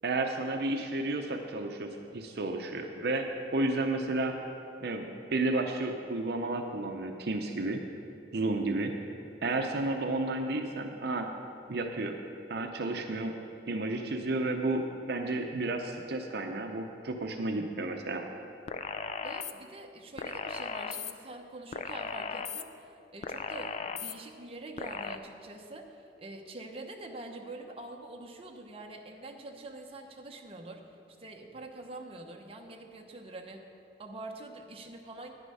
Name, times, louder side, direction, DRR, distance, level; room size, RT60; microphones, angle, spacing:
voice 1, 0.0-3.3 3.5-4.3 4.8-7.8 8.3-8.9 9.4-11.3 11.7-12.1 12.5-13.3 13.7-18.2, right 2 dB, 65° right, 4 dB, 0.7 m, -32 dB
sound 1, 18.7-19.5 20.2-21.1 21.7-22.6 23.2-24.1 24.8-25.2, left 6 dB, 40° left, 0.4 m, -37 dB
voice 2, 19.2-30.8 31.2-33.6 34.0-35.3, right 2 dB, 35° right, 2 dB, 0.9 m, -45 dB
10.0 x 9.8 x 5.5 m, 2.6 s
head